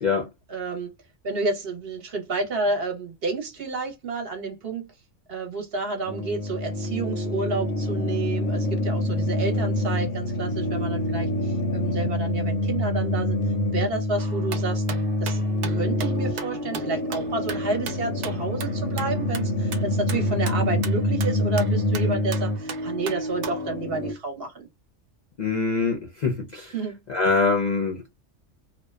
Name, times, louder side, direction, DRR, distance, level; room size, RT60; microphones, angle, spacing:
voice 1, 0.5-0.9 1.2-4.9 5.3-13.4 13.7-14.8 15.2-15.4 15.7-24.7 26.7-27.0, right 3 dB, 55° right, 0.9 m, -30 dB
sound 1, 6.1-24.1, left 1 dB, 75° left, 0.9 m, -26 dB
sound 2, 14.2-23.8, right 6 dB, 80° right, 0.4 m, -39 dB
voice 2, 25.4-26.7 27.1-28.1, left 4 dB, 50° left, 0.5 m, -24 dB
2.6 x 2.1 x 2.2 m
omnidirectional pair, 1.3 m